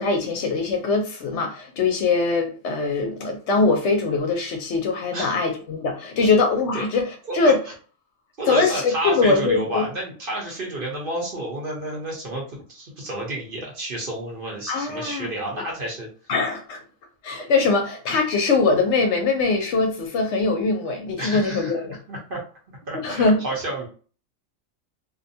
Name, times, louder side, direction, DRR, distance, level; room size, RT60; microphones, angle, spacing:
voice 1, 0.0-7.1 7.3-7.6 8.5-9.8 14.7-15.3 16.3-16.8 17.2-21.9 22.9-23.4, left 3 dB, 65° left, 0.8 m, -22 dB
voice 2, 7.2-7.6 8.4-16.1 21.2-22.4 22.7-23.9, right 1 dB, 50° right, 0.9 m, -30 dB
2.5 x 2.2 x 2.6 m
omnidirectional pair, 1.4 m